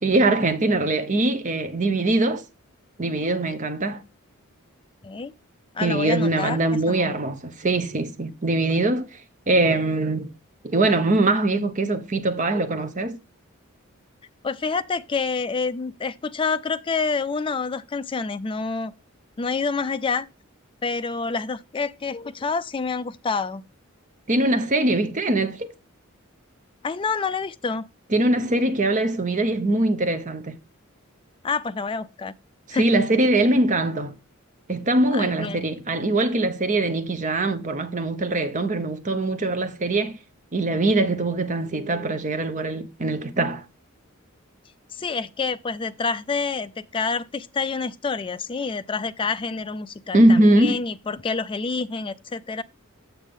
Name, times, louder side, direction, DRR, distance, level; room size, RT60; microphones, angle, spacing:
voice 1, 0.0-2.4 3.0-4.0 5.8-9.2 9.5-10.3 10.6-13.2 24.3-25.7 28.1-30.6 32.8-34.1 34.7-40.1 40.5-43.6 50.1-50.8, right 2 dB, 35° right, 0.8 m, -22 dB
voice 2, 5.7-6.6 6.9-7.2 14.4-18.9 19.4-20.3 20.8-23.6 26.8-27.9 31.4-32.3 32.7-32.9 35.1-35.6 44.9-52.6, left 4 dB, 25° left, 0.3 m, -28 dB
7.2 x 6.8 x 3.6 m
head